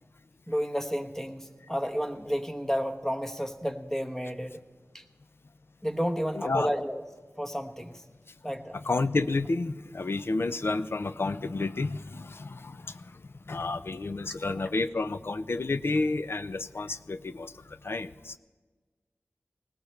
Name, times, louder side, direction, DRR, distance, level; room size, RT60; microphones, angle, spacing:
voice 1, 0.5-4.6 4.9-5.0 5.8-7.0 7.4-8.0 8.4-8.8 14.3-14.7, equal, 10° left, 6 dB, 1.1 m, -31 dB
voice 2, 8.9-12.8 13.5-17.5 17.8-18.4, left 3 dB, 55° left, 13 dB, 0.5 m, -30 dB
19.5 x 17.5 x 3.2 m, 1.4 s
wide cardioid pair, 45°, 5 cm